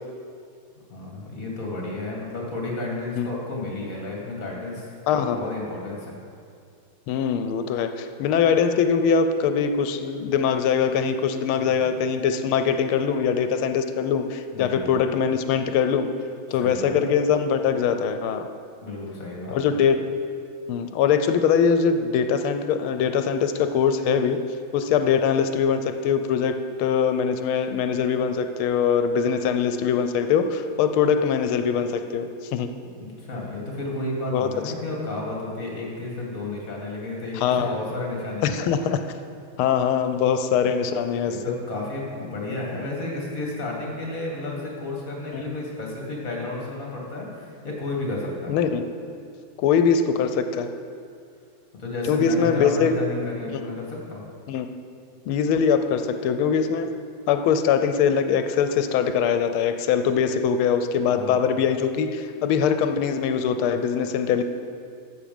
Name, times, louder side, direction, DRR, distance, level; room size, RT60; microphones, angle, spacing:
voice 1, 0.9-6.1 11.6-11.9 14.5-15.0 16.5-17.1 18.8-19.7 33.0-38.7 41.3-48.5 51.8-54.2 61.1-61.4, left 2 dB, 40° left, -2 dB, 2.2 m, -32 dB
voice 2, 5.1-5.4 7.1-16.1 16.5-18.5 19.5-20.0 20.7-24.4 24.7-32.7 34.3-34.7 37.3-37.8 38.4-39.0 39.6-41.6 45.3-45.6 48.5-48.8 49.6-50.7 52.1-52.9 54.5-54.7 55.3-56.9 57.3-64.4, left 7 dB, 85° left, 9 dB, 1.5 m, -22 dB
13.5 x 7.5 x 5.2 m, 2.3 s
omnidirectional pair, 2.3 m